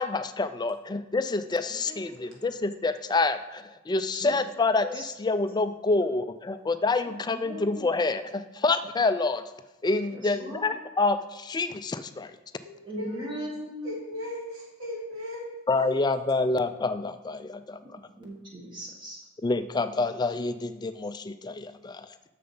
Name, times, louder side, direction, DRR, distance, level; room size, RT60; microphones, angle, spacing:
voice 1, 0.0-4.8 5.2-9.4 9.8-12.4 15.7-17.8 19.4-22.1, left 3 dB, 20° left, 11 dB, 0.4 m, -27 dB
voice 2, 2.1-2.5 4.8-4.9 6.0-6.1 12.6-13.3 13.6-15.5, left 1 dB, 90° right, -3 dB, 2.9 m, -38 dB
voice 3, 7.0-7.8 10.1-10.7 12.8-14.0 17.8-19.2, equal, 25° right, -3 dB, 1.3 m, -39 dB
6.8 x 6.7 x 5.5 m, 1.1 s
head